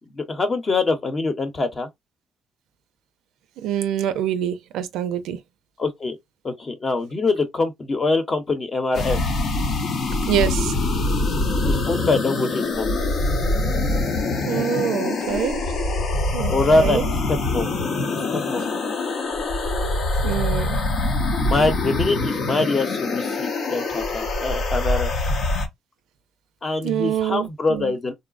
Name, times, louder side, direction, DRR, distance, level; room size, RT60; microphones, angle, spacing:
voice 1, 0.1-1.9 5.8-6.2 6.4-9.4 11.7-12.9 16.5-17.7 18.1-18.6 21.4-25.1 26.6-28.1, left 3 dB, 35° left, 0.8 m, -24 dB
voice 2, 3.6-5.4 10.3-10.7 14.4-15.6 16.3-17.1 20.2-20.8 26.8-27.9, right 10 dB, 90° right, 0.4 m, -25 dB
sound 1, 8.9-25.7, left 2 dB, 70° left, 0.8 m, -24 dB
3.9 x 2.0 x 2.4 m
cardioid pair, 90°, 0 cm